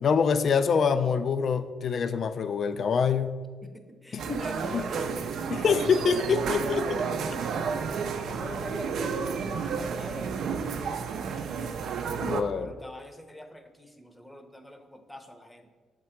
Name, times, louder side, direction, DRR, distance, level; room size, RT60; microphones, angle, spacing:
voice 1, 0.0-3.4 4.1-4.4 4.7-4.8 5.5-7.1 12.2-12.7, left 6 dB, 55° left, 11 dB, 0.3 m, -25 dB
voice 2, 3.6-5.4 7.8-11.4 12.6-15.7, equal, 5° left, 6 dB, 0.7 m, -43 dB
sound 1, 4.2-12.4, right 6 dB, 70° right, 0.5 m, -31 dB
7.1 x 3.7 x 4.5 m, 1.5 s
cardioid pair, 90°, 0 cm